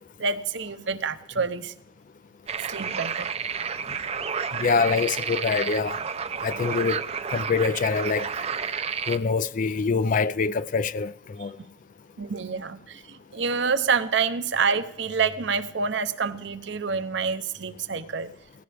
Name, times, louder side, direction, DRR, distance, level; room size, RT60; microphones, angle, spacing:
voice 1, 0.2-1.7 2.7-3.3 11.4-11.5 12.2-18.3, right 5 dB, 60° right, 0.8 m, -27 dB
sound 1, 2.5-9.2, right 6 dB, 30° right, 0.5 m, -31 dB
voice 2, 4.6-6.0 6.4-7.0 7.3-8.3 9.1-11.5, left 5 dB, 40° left, 0.4 m, -25 dB
17.0 x 15.5 x 3.4 m
head